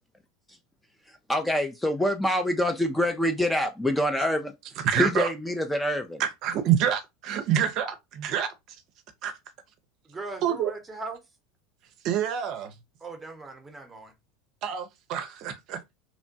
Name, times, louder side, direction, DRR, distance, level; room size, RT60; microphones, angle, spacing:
voice 1, 1.1-4.5 5.0-6.2, left 1 dB, 5° left, 0.4 m, -26 dB
voice 2, 4.8-5.3 6.2-8.8 9.2-9.3 10.4-10.7 12.0-12.7 14.6-15.8, right 9 dB, 55° right, 0.5 m, -27 dB
voice 3, 10.1-11.2 13.0-14.1, right 3 dB, 15° right, 0.8 m, -39 dB
2.9 x 2.1 x 2.6 m
hypercardioid pair, 95°, 0 cm